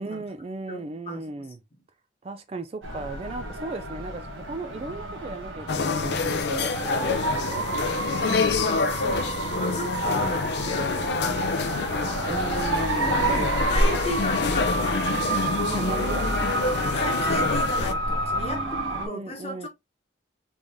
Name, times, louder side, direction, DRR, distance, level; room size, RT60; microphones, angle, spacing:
voice 1, 0.0-1.6 2.2-7.7 12.3-13.5 13.8-14.0 15.7-16.5 18.3-19.7, right 3 dB, 30° right, 0.3 m, -36 dB
voice 2, 0.7-1.5 8.2-12.5 13.1-15.3 17.0-19.7, left 1 dB, 30° left, 1.0 m, -35 dB
sound 1, 2.8-19.1, right 2 dB, 85° right, 1.2 m, -29 dB
sound 2, 5.7-17.9, left 4 dB, 60° left, 0.4 m, -27 dB
3.5 x 3.4 x 2.6 m
head